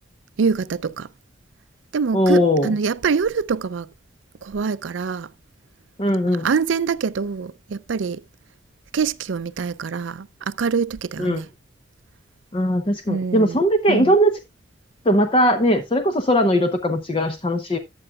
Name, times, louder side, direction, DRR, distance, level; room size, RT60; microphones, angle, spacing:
voice 1, 0.4-1.1 1.9-3.9 4.4-5.3 6.4-8.2 8.9-11.5 13.1-13.6 13.9-14.2, right 5 dB, 85° right, 0.5 m, -24 dB
voice 2, 2.1-2.7 6.0-6.5 11.2-11.4 12.5-14.3 15.1-17.8, equal, 30° left, 0.7 m, -19 dB
13.5 x 7.8 x 2.4 m
head